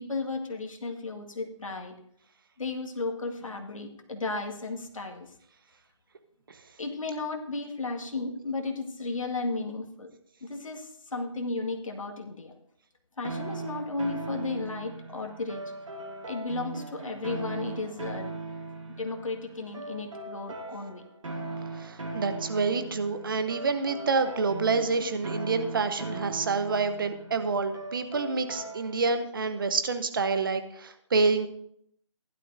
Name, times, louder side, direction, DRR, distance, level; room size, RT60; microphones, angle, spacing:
voice 1, 0.0-2.0 2.6-5.3 6.8-10.1 10.4-12.5 13.2-15.6 16.3-18.3 19.0-21.0, left 3 dB, 75° left, 3 dB, 1.9 m, -34 dB
sound 1, 13.2-29.2, right 2 dB, 70° right, 2.3 m, -39 dB
voice 2, 21.7-31.5, right 4 dB, 40° right, 9 dB, 0.9 m, -28 dB
15.5 x 11.5 x 2.7 m, 0.71 s
figure-of-eight pair, 165°, 17 cm